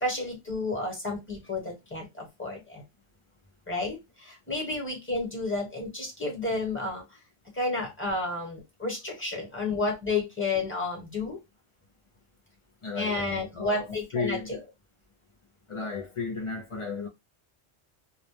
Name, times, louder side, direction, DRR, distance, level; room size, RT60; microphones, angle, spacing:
voice 1, 0.0-2.8 3.7-7.2 7.5-11.4 13.0-14.6, left 3 dB, 10° left, 0.9 m, -31 dB
voice 2, 12.8-13.9 14.1-14.6 15.7-17.1, left 4 dB, 55° left, 0.3 m, -34 dB
2.2 x 2.0 x 3.0 m
omnidirectional pair, 1.1 m